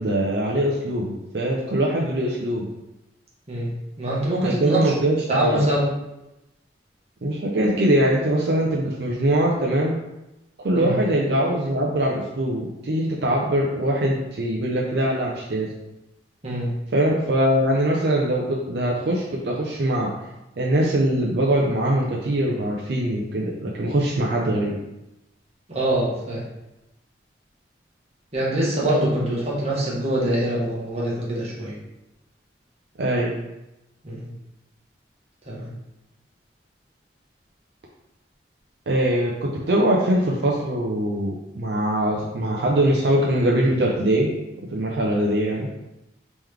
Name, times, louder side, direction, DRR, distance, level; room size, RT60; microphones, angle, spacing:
voice 1, 0.0-2.7 4.4-5.6 7.2-10.0 10.6-15.7 16.9-20.1 20.6-24.7 33.0-33.3 38.9-44.3 44.7-45.7, right 1 dB, 65° right, -3 dB, 0.5 m, -22 dB
voice 2, 4.0-4.8 5.3-5.9 10.7-10.9 16.4-16.7 25.7-26.4 28.3-31.7 34.0-34.3 35.5-35.7, right 1 dB, 35° right, -6 dB, 1.1 m, -24 dB
3.7 x 3.1 x 3.2 m, 0.93 s
head